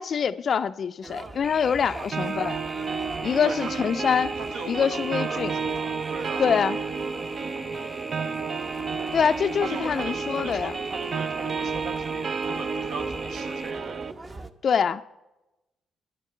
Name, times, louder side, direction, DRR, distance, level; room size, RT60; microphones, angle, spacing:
voice 1, 0.0-2.6 3.2-4.3 4.7-5.5 6.4-6.8 9.1-10.7 14.6-15.0, left 7 dB, 50° left, 0.3 m, -24 dB
sound 1, 1.0-14.5, right 2 dB, 30° right, 0.8 m, -43 dB
sound 2, 1.4-13.7, left 1 dB, 5° left, 0.7 m, -43 dB
sound 3, 2.1-14.1, right 5 dB, 45° right, 0.4 m, -31 dB
voice 2, 3.4-3.9 4.4-6.4 9.6-14.0, right 4 dB, 75° right, 1.2 m, -39 dB
10.5 x 8.3 x 5.4 m
cardioid pair, 90°, 0 cm